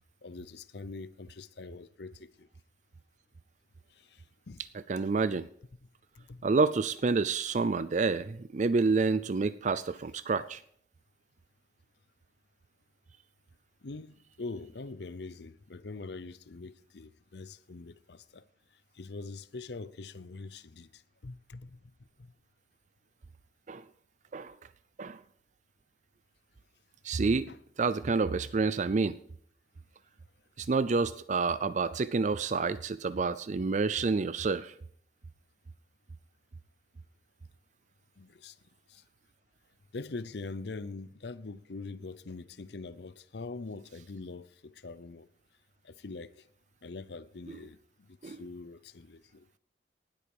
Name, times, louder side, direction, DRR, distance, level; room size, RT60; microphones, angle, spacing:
voice 1, 0.2-2.5 4.1-4.6 6.2-6.4 13.8-18.4 19.0-21.8 27.5-27.6 38.2-38.5 38.9-39.0 39.9-45.3 45.8-46.3 46.8-49.5, left 3 dB, 65° left, 0.7 m, -43 dB
voice 2, 4.9-5.5 6.4-10.6 23.7-23.8 24.3-24.5 25.0-25.2 27.0-27.5 27.8-29.2 30.6-34.7 48.2-48.4, right 4 dB, 40° right, 0.4 m, -28 dB
18.5 x 8.5 x 4.8 m
head